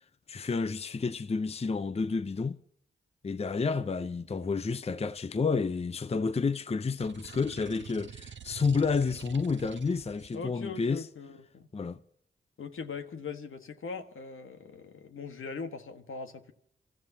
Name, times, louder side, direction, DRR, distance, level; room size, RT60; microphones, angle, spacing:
voice 1, 0.3-2.6 3.2-11.1 11.7-12.0, left 4 dB, 30° left, 0.6 m, -30 dB
sound 1, 7.0-10.4, right 7 dB, 60° right, 0.7 m, -47 dB
voice 2, 10.3-11.7 12.6-16.5, left 5 dB, 75° left, 1.5 m, -40 dB
28.0 x 13.5 x 2.8 m
cardioid pair, 50°, 21 cm